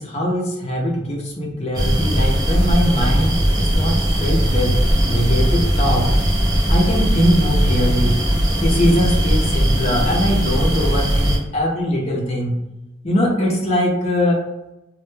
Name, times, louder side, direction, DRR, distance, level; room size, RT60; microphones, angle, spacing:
voice 1, 0.0-4.8 5.0-6.1 6.7-8.2 8.6-12.6 13.0-14.4, equal, 35° left, -1 dB, 0.5 m, -21 dB
sound 1, 1.7-11.4, equal, 20° right, 0.4 m, -18 dB
2.2 x 2.1 x 3.0 m, 0.94 s
head